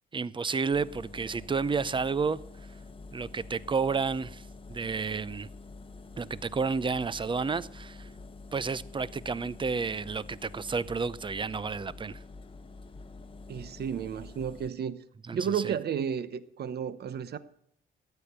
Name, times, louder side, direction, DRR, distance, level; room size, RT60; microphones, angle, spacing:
voice 1, 0.1-2.4 3.1-5.5 6.2-8.1 8.5-12.2 15.3-15.7, right 5 dB, 25° right, 0.6 m, -31 dB
Engine, 0.7-14.7, left 3 dB, 25° left, 1.0 m, -47 dB
voice 2, 13.5-15.0 15.3-17.4, right 7 dB, 55° right, 0.9 m, -32 dB
13.5 x 8.8 x 6.7 m
cardioid pair, 90°, 20 cm